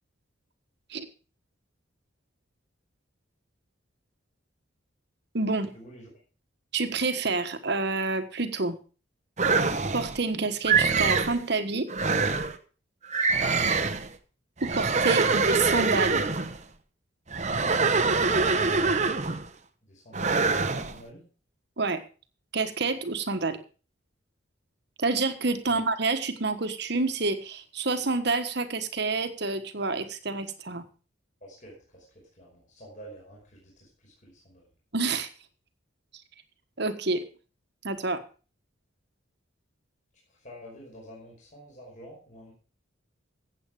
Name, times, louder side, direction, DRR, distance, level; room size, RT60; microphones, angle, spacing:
voice 1, 5.3-5.7 6.7-8.8 9.9-11.9 14.6-16.3 21.8-22.0 22.5-23.6 25.0-30.8 34.9-35.3 36.1-36.2 36.8-37.3 37.8-38.2, right 3 dB, 55° right, 9 dB, 1.4 m, -28 dB
sound 1, 9.4-10.2 10.7-11.4 11.9-12.6 13.1-14.1 14.6-16.6 17.3-19.5 20.1-20.9, right 4 dB, 35° right, 0.9 m, -24 dB
voice 2, 19.9-21.3 25.7-25.8 31.4-32.0 32.4-34.6 40.4-42.5, equal, 40° left, -3 dB, 5.4 m, -48 dB
15.5 x 8.2 x 4.9 m, 0.37 s
head